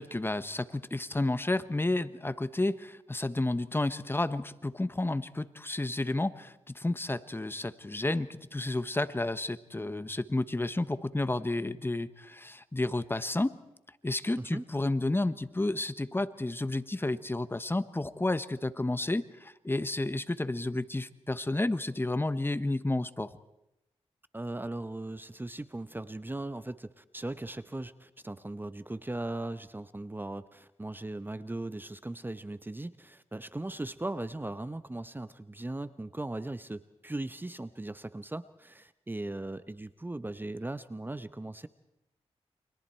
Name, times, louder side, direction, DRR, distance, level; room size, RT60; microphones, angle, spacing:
voice 1, 0.0-13.6 14.0-23.3, left 2 dB, 20° left, 14 dB, 1.2 m, -31 dB
voice 2, 24.3-41.7, right 2 dB, 20° right, 14 dB, 0.9 m, -38 dB
30.0 x 25.0 x 4.5 m, 0.89 s
cardioid pair, 60°, 11 cm